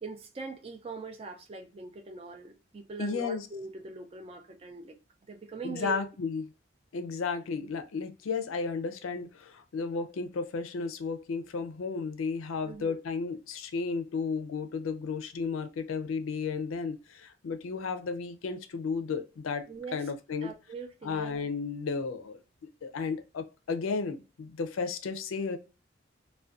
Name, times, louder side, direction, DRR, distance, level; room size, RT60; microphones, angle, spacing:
voice 1, 0.0-5.0 5.2-6.0 12.6-13.0 19.7-20.1 20.4-21.4, right 3 dB, 30° right, 0.3 m, -42 dB
voice 2, 3.0-3.5 5.6-6.4 6.9-19.6 19.9-20.5 21.0-22.4 22.8-25.6, left 5 dB, 90° left, 0.4 m, -33 dB
2.4 x 2.1 x 2.3 m
head